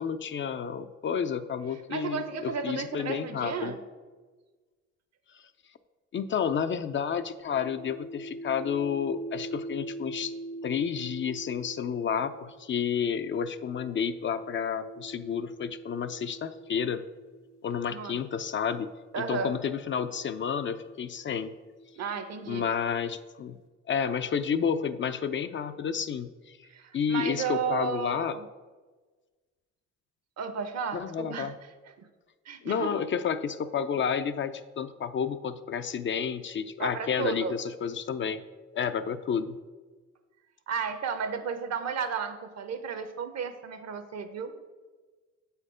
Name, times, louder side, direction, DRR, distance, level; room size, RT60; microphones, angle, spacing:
voice 1, 0.0-3.7 6.1-10.3 10.6-17.0 17.6-18.9 19.2-21.5 22.5-23.6 23.9-26.6 26.9-28.4 30.9-31.6 32.6-38.4 38.7-39.6, left 7 dB, 40° left, 10 dB, 0.4 m, -30 dB
voice 2, 1.9-3.8 17.9-18.2 19.1-19.5 22.0-22.7 26.6-28.5 30.4-31.5 32.0-32.1 32.5-32.9 36.8-37.5 40.7-44.5, right 6 dB, 60° right, 9 dB, 0.8 m, -33 dB
sound 1, 7.4-17.8 18.7-22.4, right 1 dB, 75° left, 1.6 m, -44 dB
7.4 x 4.4 x 4.9 m, 1.3 s
cardioid pair, 90°, 30 cm